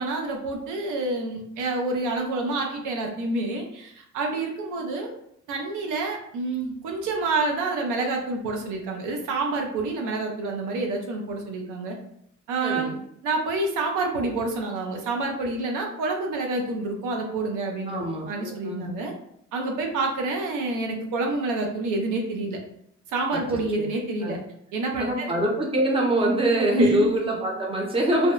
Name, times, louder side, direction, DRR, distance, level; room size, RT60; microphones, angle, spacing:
voice 1, 0.0-5.1 5.5-12.0 12.5-12.9 13.2-19.1 19.5-22.6 23.1-24.4 24.7-25.3 26.7-27.0, right 3 dB, 90° right, 2 dB, 0.5 m, -28 dB
voice 2, 12.6-13.0 17.9-19.0 23.8-23.9 24.2-24.4 25.0-28.3, right 1 dB, 20° right, -1 dB, 0.7 m, -24 dB
2.7 x 2.0 x 2.3 m, 0.71 s
cardioid pair, 90°, 30 cm